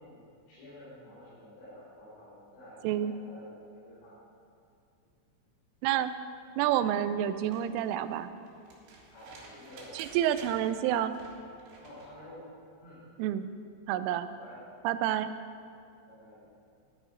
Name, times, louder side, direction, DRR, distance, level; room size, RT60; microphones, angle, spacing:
voice 1, 0.0-3.5 3.8-4.1 9.1-10.4 11.8-12.4 12.8-13.0 14.4-14.6 16.1-16.4, left 1 dB, 75° left, -11 dB, 6.1 m, -50 dB
voice 2, 2.8-3.1 5.8-6.1 6.6-8.3 9.9-11.1 13.2-13.5 13.9-14.3 14.8-15.3, right 11 dB, 90° right, 11 dB, 3.1 m, -29 dB
sound 1, 7.3-12.2 13.8-13.9, right 2 dB, 65° right, 3.5 m, -53 dB
12.5 x 9.8 x 5.0 m, 2.4 s
omnidirectional pair, 5.6 m